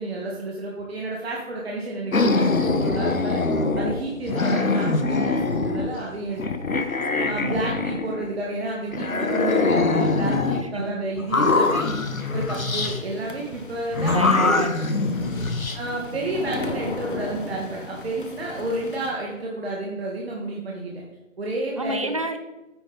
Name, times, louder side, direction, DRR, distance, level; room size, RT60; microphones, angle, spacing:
voice 1, 0.0-3.4 3.8-6.9 7.3-11.9 12.3-14.7 15.1-15.4 15.7-21.0 21.4-22.1, right 2 dB, 50° right, -2 dB, 1.6 m, -30 dB
sound 1, 2.1-4.0 4.3-6.0 6.4-8.4 8.9-10.6 11.2-13.0 13.9-15.8, left 3 dB, 85° left, 1.2 m, -23 dB
voice 2, 7.1-7.8 10.6-11.0 11.6-11.8 14.1-15.3 15.9-16.1 21.8-22.4, right 1 dB, 25° right, 7 dB, 0.6 m, -32 dB
sound 2, 11.7-19.1, left 3 dB, 40° left, 1.2 m, -37 dB
9.7 x 8.6 x 3.9 m, 1.0 s
figure-of-eight pair, 150°, 40 cm